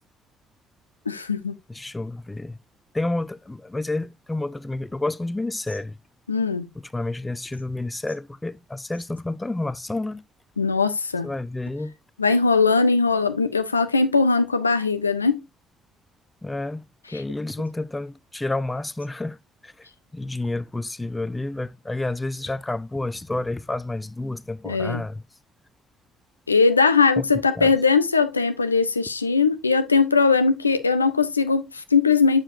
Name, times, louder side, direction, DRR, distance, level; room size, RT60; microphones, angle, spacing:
voice 1, 1.1-1.6 6.3-6.7 10.6-11.3 12.2-15.4 24.7-25.0 26.5-32.4, left 4 dB, 85° left, 0.4 m, -20 dB
voice 2, 1.7-2.6 2.9-6.0 6.8-10.2 11.2-11.9 16.4-16.9 17.1-19.9 20.1-25.2 27.2-27.3 27.6-27.7, left 2 dB, 15° left, 0.5 m, -30 dB
7.2 x 6.6 x 2.6 m
figure-of-eight pair, 45°, 0 cm